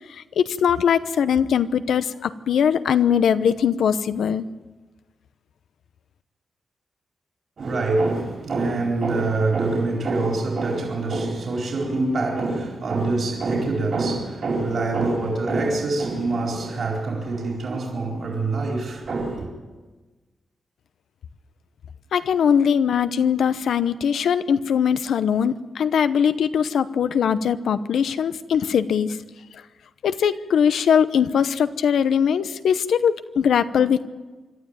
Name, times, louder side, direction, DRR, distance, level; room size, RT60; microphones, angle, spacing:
voice 1, 0.4-4.4 22.1-29.2 30.0-34.1, left 7 dB, 90° left, 0.9 m, -21 dB
voice 2, 7.6-19.5, right 3 dB, 55° right, 4.3 m, -25 dB
25.5 x 12.5 x 9.1 m
wide cardioid pair, 125°, 0 cm